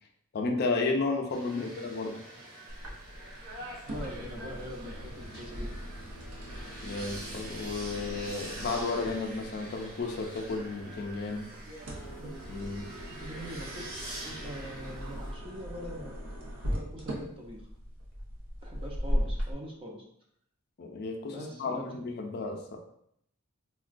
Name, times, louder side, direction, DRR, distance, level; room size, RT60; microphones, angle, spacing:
voice 1, 0.3-2.2 6.8-11.5 12.5-12.9 20.8-22.8, left 3 dB, 50° left, 2 dB, 0.4 m, -33 dB
sound 1, 1.3-15.3, right 1 dB, 45° right, 0.9 m, -45 dB
sound 2, 2.7-19.5, equal, 85° right, 0.7 m, -39 dB
voice 2, 3.9-5.8 12.2-12.3 13.1-13.8 14.2-16.2 16.6-17.7 18.6-20.1 21.3-22.0, equal, 25° right, -1 dB, 0.5 m, -43 dB
3.7 x 2.2 x 2.5 m, 0.71 s
head